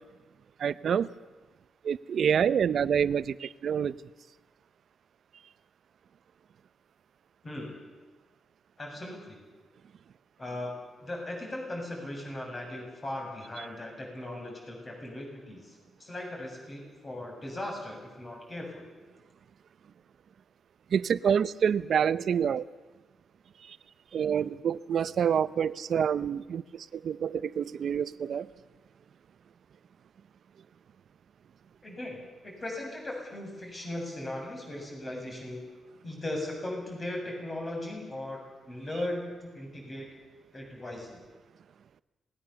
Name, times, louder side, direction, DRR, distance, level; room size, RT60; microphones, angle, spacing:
voice 1, 0.6-1.1 1.8-4.0 20.9-22.6 23.7-23.8 24.1-28.5, right 8 dB, 60° right, 16 dB, 0.7 m, -27 dB
voice 2, 7.4-7.8 8.8-9.4 10.4-10.7 11.0-18.9 31.8-35.6 36.0-38.4 38.7-40.0 40.5-41.2, left 1 dB, 25° left, 0 dB, 7.1 m, -38 dB
27.0 x 19.5 x 7.0 m, 1.3 s
wide cardioid pair, 135°, 0 cm